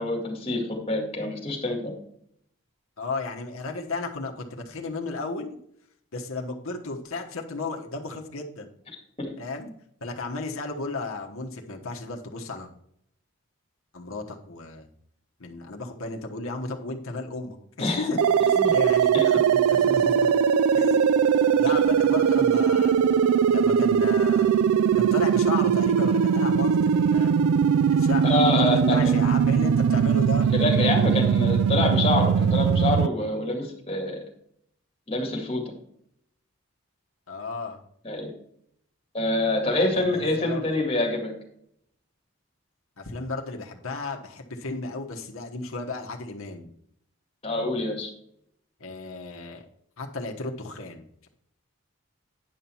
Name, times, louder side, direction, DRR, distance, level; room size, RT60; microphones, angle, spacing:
voice 1, 0.0-1.9 9.2-9.3 17.8-18.1 18.6-18.7 19.1-19.3 28.2-29.3 30.5-34.2 35.1-35.6 38.0-38.3 39.1-41.3 47.4-48.1, left 2 dB, 25° left, 0 dB, 2.1 m, -26 dB
voice 2, 3.0-5.6 6.1-8.7 9.4-9.7 10.0-12.7 13.9-14.9 15.4-20.3 20.7-21.0 21.4-23.0 23.5-24.5 24.9-27.4 27.9-30.5 37.3-37.8 39.7-40.8 43.0-46.7 48.8-49.6 50.0-51.3, left 3 dB, 70° left, 1 dB, 1.2 m, -34 dB
sound 1, 18.2-33.1, right 7 dB, 85° right, 0.3 m, -21 dB
9.9 x 5.6 x 4.5 m, 0.70 s
head